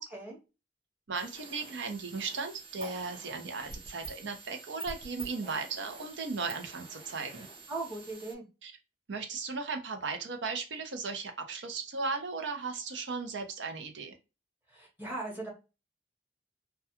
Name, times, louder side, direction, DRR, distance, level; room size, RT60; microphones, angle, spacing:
sound 1, 1.1-8.3, right 4 dB, 30° right, 0.6 m, -47 dB
voice 1, 1.1-7.5 8.6-8.7 9.1-14.1, right 4 dB, 80° right, 5 dB, 0.6 m, -36 dB
voice 2, 7.7-8.4 14.7-15.5, right 2 dB, 10° right, -2 dB, 0.9 m, -38 dB
2.3 x 2.2 x 2.8 m, 0.29 s
head